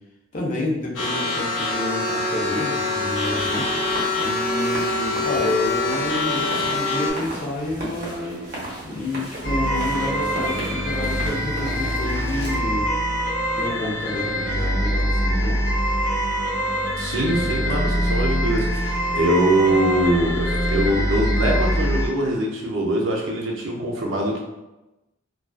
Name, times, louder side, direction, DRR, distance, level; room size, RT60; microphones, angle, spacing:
voice 1, 0.3-3.7 4.2-8.4 8.8-12.9 13.6-15.6, left 1 dB, 40° left, -3 dB, 0.5 m, -29 dB
sound 1, 0.9-7.1, left 3 dB, 85° left, 0.7 m, -24 dB
sound 2, 3.1-12.6, right 1 dB, 45° right, 0.7 m, -35 dB
sound 3, 9.4-22.1, equal, 60° left, 1.0 m, -24 dB
voice 2, 17.0-24.4, right 1 dB, 85° right, -1 dB, 0.5 m, -23 dB
2.3 x 2.3 x 2.3 m, 1.0 s
head